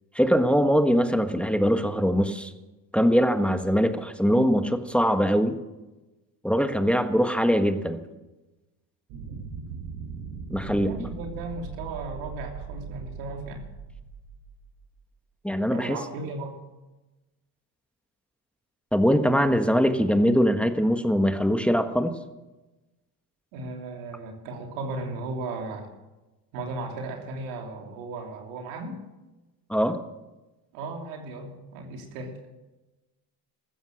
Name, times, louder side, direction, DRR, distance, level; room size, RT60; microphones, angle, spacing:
voice 1, 0.1-2.5 2.9-5.5 6.4-8.0 10.5-11.1 15.4-16.0 18.9-22.1 29.7-29.9, equal, 5° left, 7 dB, 1.5 m, -22 dB
sound 1, 9.1-14.8, right 6 dB, 75° right, 4.1 m, -39 dB
voice 2, 10.6-13.7 15.7-16.5 23.5-25.9 26.5-29.0 30.7-32.4, right 2 dB, 90° right, 2 dB, 3.2 m, -36 dB
15.0 x 13.0 x 6.4 m, 1.1 s
supercardioid pair, 75°, 44 cm